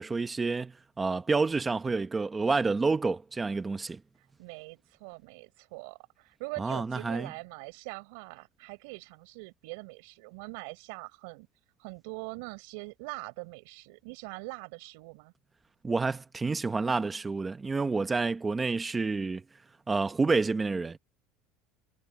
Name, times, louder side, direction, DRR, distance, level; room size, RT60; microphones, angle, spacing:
voice 1, 0.0-4.0 6.6-7.3 15.8-19.4 19.9-21.0, right 4 dB, 10° right, 0.9 m, -29 dB
voice 2, 4.2-11.5 11.8-15.3, right 28 dB, 70° right, 4.4 m, -43 dB
cardioid pair, 165°, 0 cm